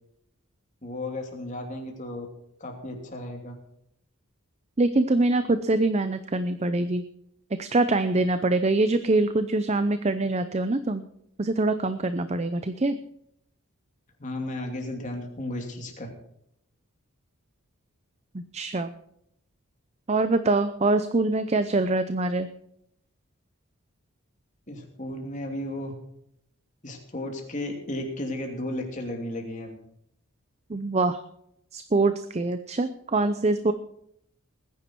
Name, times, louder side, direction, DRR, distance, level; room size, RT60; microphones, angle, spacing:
voice 1, 0.8-2.3 2.6-3.5 14.2-16.1 24.7-25.9 26.8-29.8, left 1 dB, 35° left, 2 dB, 2.9 m, -34 dB
voice 2, 4.8-7.0 7.6-11.0 11.4-13.0 18.3-18.9 20.1-22.5 30.7-31.2 31.7-33.7, right 2 dB, 30° right, 10 dB, 0.6 m, -24 dB
19.5 x 10.5 x 4.6 m, 0.74 s
head